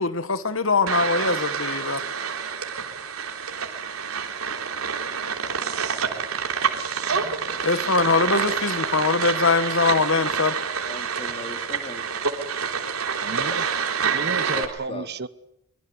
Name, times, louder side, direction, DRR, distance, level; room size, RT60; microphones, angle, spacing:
voice 1, 0.0-2.0 7.6-10.6, left 4 dB, 65° left, 1.5 m, -22 dB
sound 1, 0.9-14.7, right 6 dB, 80° right, 3.6 m, -27 dB
voice 2, 7.4-7.8 10.8-12.1 14.5-15.1, left 1 dB, 25° left, 2.8 m, -38 dB
voice 3, 13.2-13.7 14.1-15.3, right 3 dB, 50° right, 1.0 m, -32 dB
24.5 x 23.5 x 8.1 m
head